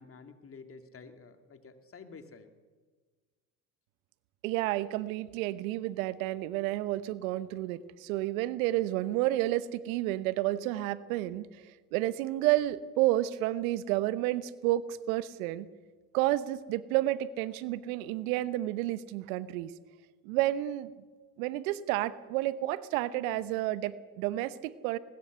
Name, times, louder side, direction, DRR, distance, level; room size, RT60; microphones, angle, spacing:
voice 1, 0.0-2.5, left 4 dB, 30° left, 7 dB, 2.6 m, -50 dB
voice 2, 4.4-15.7 16.1-19.7 20.2-20.9 21.4-25.0, right 15 dB, 70° right, 16 dB, 1.1 m, -30 dB
21.0 x 20.0 x 6.9 m, 1.4 s
hypercardioid pair, 75°, 43 cm